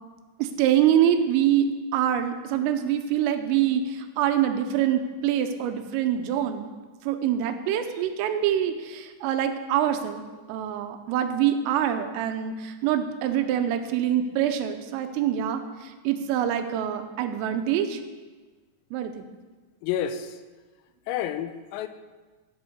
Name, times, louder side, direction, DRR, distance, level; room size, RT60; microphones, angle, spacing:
voice 1, 0.4-1.7 1.9-6.7 7.0-10.2 10.5-18.0 18.9-19.3, right 10 dB, 90° right, 7 dB, 3.3 m, -25 dB
voice 2, 19.8-20.4 21.1-21.9, left 9 dB, 90° left, 10 dB, 3.4 m, -29 dB
13.5 x 6.4 x 6.7 m, 1.3 s
omnidirectional pair, 5.9 m